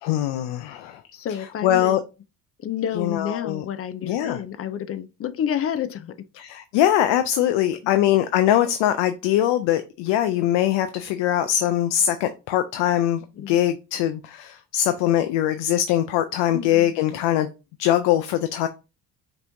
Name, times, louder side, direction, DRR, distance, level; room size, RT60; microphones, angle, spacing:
voice 1, 0.0-1.0 1.6-2.0 3.0-3.6 4.0-4.4 6.4-13.2 13.5-17.5 17.8-18.7, left 12 dB, 90° left, 0.6 m, -22 dB
voice 2, 1.1-2.0 2.6-6.2 7.8-7.9 13.3-13.6 16.5-16.9, left 9 dB, 35° left, 0.4 m, -29 dB
5.3 x 3.0 x 2.6 m
cardioid pair, 115°, 42 cm